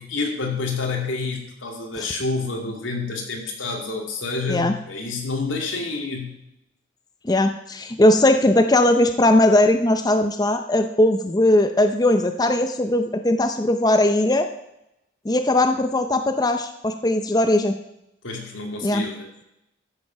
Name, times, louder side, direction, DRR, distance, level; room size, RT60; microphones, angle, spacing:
voice 1, 0.0-6.4 18.2-19.3, left 3 dB, 85° left, 1 dB, 2.5 m, -28 dB
voice 2, 7.2-14.5 15.2-17.7 18.8-19.0, left 1 dB, 20° left, 7 dB, 0.6 m, -19 dB
13.5 x 7.1 x 5.8 m, 0.85 s
head